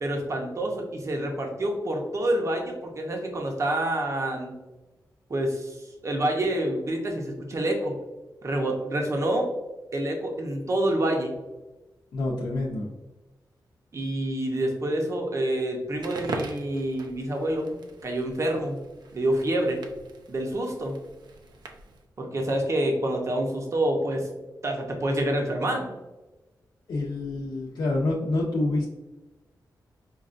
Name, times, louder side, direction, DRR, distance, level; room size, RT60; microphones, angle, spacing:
voice 1, 0.0-4.5 5.3-5.8 6.0-8.0 8.4-9.5 9.9-11.4 13.9-18.8 19.1-19.8 20.3-21.0 22.2-24.3 24.6-25.9, right 1 dB, 40° right, 2 dB, 0.7 m, -27 dB
voice 2, 12.1-12.9 26.9-28.9, left 2 dB, 85° left, -4 dB, 0.6 m, -27 dB
Crackle, 15.9-22.1, right 3 dB, 80° right, 0.5 m, -41 dB
5.2 x 2.3 x 2.4 m, 1.1 s
wide cardioid pair, 125°, 7 cm